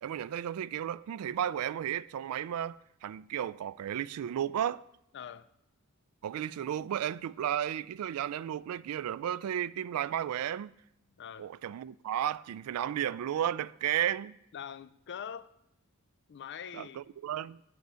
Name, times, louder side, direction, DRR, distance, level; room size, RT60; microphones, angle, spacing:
voice 1, 0.0-4.8 6.2-10.7 11.4-14.3 16.7-17.6, right 10 dB, 85° right, 0.3 m, -33 dB
voice 2, 5.1-5.5 11.1-11.5 14.5-15.6 16.3-17.0, left 8 dB, 55° left, 0.4 m, -43 dB
7.9 x 6.2 x 6.8 m
head